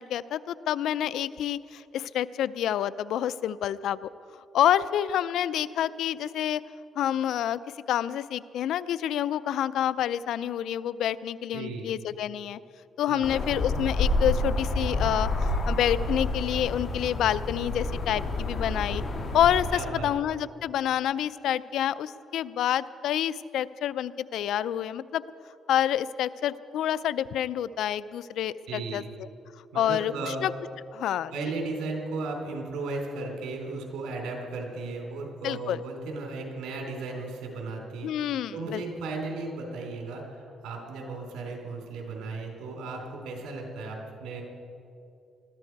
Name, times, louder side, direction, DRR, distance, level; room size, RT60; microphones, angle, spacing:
voice 1, 0.0-4.1 4.5-6.6 7.0-7.6 7.9-12.6 13.0-19.0 19.3-25.2 25.7-29.0 29.7-30.5 30.9-31.3 35.4-35.8 38.0-38.8, left 10 dB, 80° left, 17 dB, 0.4 m, -28 dB
voice 2, 11.5-11.9 13.1-13.4 19.7-20.1 28.7-29.1 29.7-30.5 31.3-38.1 38.5-44.4, right 3 dB, 85° right, 1 dB, 3.4 m, -35 dB
sound 1, 13.2-19.8, left 2 dB, 50° left, 3.0 m, -29 dB
21.0 x 13.5 x 4.6 m, 2.7 s
cardioid pair, 90°, 0 cm